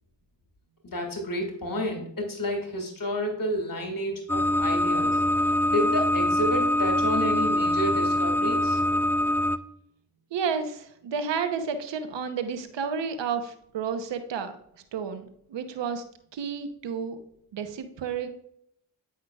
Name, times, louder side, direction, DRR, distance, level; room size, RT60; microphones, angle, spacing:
voice 1, 0.8-5.2 5.7-8.8, equal, 50° left, 3 dB, 1.9 m, -30 dB
sound 1, 4.3-9.6, left 1 dB, 5° left, 0.4 m, -24 dB
voice 2, 10.3-14.5 14.9-16.0 16.3-17.2 17.5-18.3, right 6 dB, 85° right, 9 dB, 0.9 m, -31 dB
10.0 x 5.6 x 2.3 m, 0.69 s
cardioid pair, 40°, 42 cm